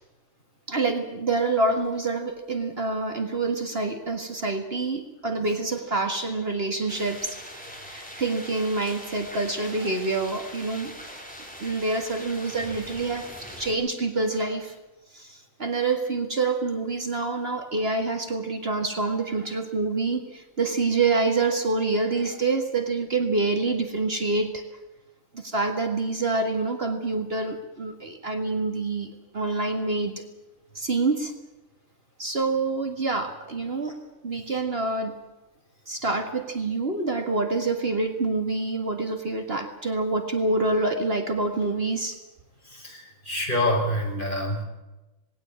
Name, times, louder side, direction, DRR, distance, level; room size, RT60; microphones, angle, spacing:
voice 1, 0.7-7.4 7.8-10.9 11.6-14.8 15.1-24.6 25.3-30.2 30.8-31.3 32.2-34.0 34.2-35.2 35.9-42.2, right 3 dB, 50° right, 5 dB, 2.0 m, -27 dB
sound 1, 6.9-13.8, equal, 5° left, 4.0 m, -42 dB
voice 2, 42.6-44.6, left 1 dB, 40° left, 0 dB, 6.1 m, -27 dB
19.0 x 17.5 x 8.8 m, 1.1 s
omnidirectional pair, 1.4 m